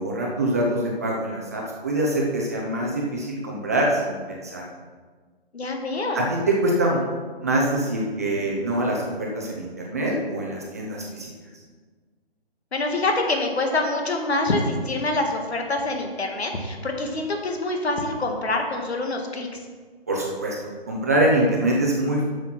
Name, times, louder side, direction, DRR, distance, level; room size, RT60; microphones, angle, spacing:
voice 1, 0.0-4.6 6.1-7.0 7.4-11.3 20.1-20.6 20.9-22.2, right 1 dB, 15° right, -2 dB, 0.6 m, -24 dB
voice 2, 5.5-6.3 12.7-19.6, left 2 dB, 80° left, 3 dB, 1.9 m, -25 dB
7.5 x 6.3 x 5.8 m, 1.5 s
hypercardioid pair, 165°, 32 cm